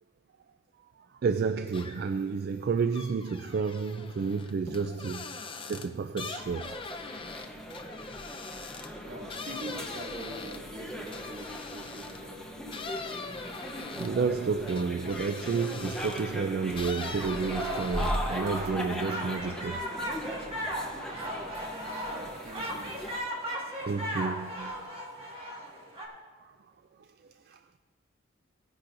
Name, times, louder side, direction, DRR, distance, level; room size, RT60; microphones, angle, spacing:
voice 1, 1.2-5.4 5.7-6.8 13.9-19.8 23.9-25.1 27.5-27.6, right 5 dB, 50° right, 0.3 m, -31 dB
sound 1, 1.7-2.2 2.5-12.3 12.7-16.3 16.7-18.4 18.7-19.4, left 4 dB, 25° left, 0.6 m, -42 dB
sound 2, 6.4-23.2, equal, 5° left, 1.0 m, -39 dB
voice 2, 9.0-13.0 22.1-23.1, right 1 dB, 70° right, 2.3 m, -44 dB
sound 3, 16.6-26.1, equal, 25° right, 1.8 m, -37 dB
18.5 x 10.0 x 2.6 m
head